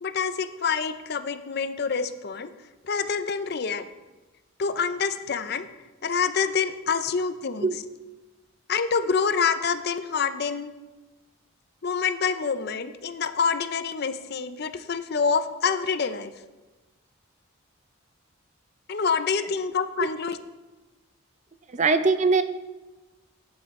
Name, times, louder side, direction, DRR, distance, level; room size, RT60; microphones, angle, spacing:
voice 1, 0.0-2.5 2.8-3.9 4.6-5.7 6.0-7.7 8.7-10.7 11.8-16.3 18.9-20.4, left 5 dB, 50° left, 11 dB, 0.5 m, -26 dB
voice 2, 21.7-22.4, right 4 dB, 35° right, 10 dB, 0.5 m, -21 dB
11.0 x 8.8 x 4.3 m, 1.2 s
head